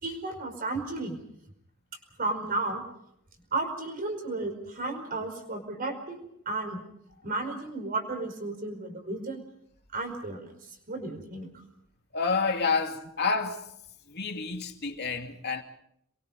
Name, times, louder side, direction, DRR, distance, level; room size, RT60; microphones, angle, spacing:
voice 1, 0.0-1.2 2.2-2.8 3.5-6.8 7.2-9.4 9.9-11.5, right 2 dB, 40° right, 5.1 m, -33 dB
voice 2, 12.1-13.7 14.1-15.6, left 4 dB, 50° left, 2.7 m, -29 dB
27.5 x 23.0 x 5.4 m
head